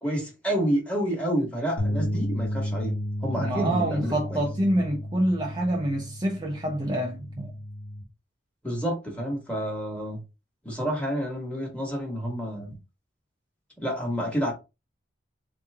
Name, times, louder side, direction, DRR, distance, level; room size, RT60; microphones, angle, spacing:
voice 1, 0.0-2.9 3.2-4.4 8.6-10.2 10.6-12.8 13.8-14.5, equal, 5° left, 1.5 m, -29 dB
sound 1, 1.8-8.0, equal, 65° left, 1.3 m, -32 dB
voice 2, 3.4-7.5, right 1 dB, 20° right, 0.6 m, -27 dB
4.0 x 3.1 x 3.5 m
head